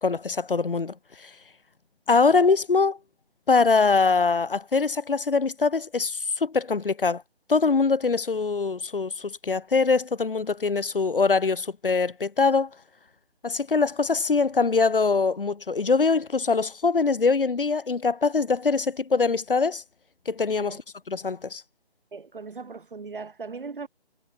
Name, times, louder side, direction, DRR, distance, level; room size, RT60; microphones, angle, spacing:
voice 1, 0.0-1.3 2.1-3.0 3.5-7.2 7.5-12.7 13.4-19.8 20.3-20.8 21.1-21.6, left 4 dB, 55° left, 3.0 m, -23 dB
voice 2, 22.1-23.9, right 4 dB, 50° right, 7.0 m, -38 dB
figure-of-eight pair, 155°, 33 cm